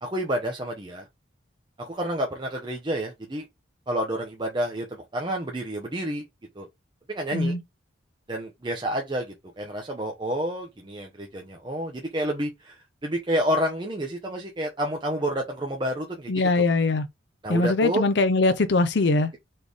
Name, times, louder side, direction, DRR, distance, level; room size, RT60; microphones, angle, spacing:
voice 1, 0.0-1.1 1.8-3.5 3.9-6.2 6.6-6.7 7.1-7.5 8.3-16.3 16.6-16.7 17.4-18.0, right 1 dB, 25° right, 0.7 m, -29 dB
voice 2, 16.3-17.1 17.5-19.3, left 3 dB, 60° left, 0.6 m, -22 dB
4.2 x 3.2 x 3.4 m
head